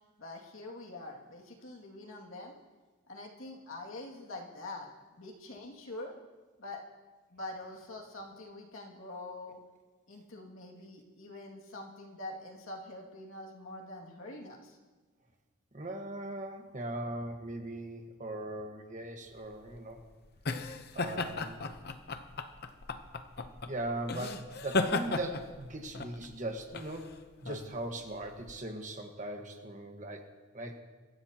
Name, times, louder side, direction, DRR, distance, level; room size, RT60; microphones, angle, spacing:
voice 1, 0.2-2.6 3.1-4.9 5.2-6.2 6.6-6.8 7.3-9.6 10.1-14.8, left 2 dB, 65° left, -1 dB, 2.3 m, -45 dB
voice 2, 15.7-20.0 20.9-21.6 23.6-27.2 27.4-30.8, right 1 dB, 35° right, 3 dB, 1.4 m, -39 dB
sound 1, 19.4-28.6, left 3 dB, 50° left, 0.8 m, -36 dB
24.0 x 14.5 x 2.9 m, 1.3 s
head